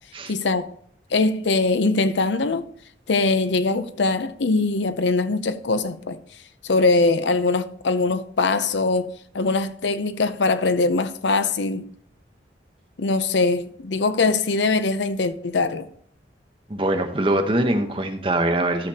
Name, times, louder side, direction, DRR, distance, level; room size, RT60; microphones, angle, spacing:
voice 1, 0.3-0.7 1.1-2.6 3.1-6.2 6.6-11.9 13.0-15.9, left 3 dB, 80° left, 0.6 m, -22 dB
voice 2, 16.7-18.9, right 1 dB, 30° right, 0.9 m, -23 dB
13.0 x 6.6 x 2.8 m
head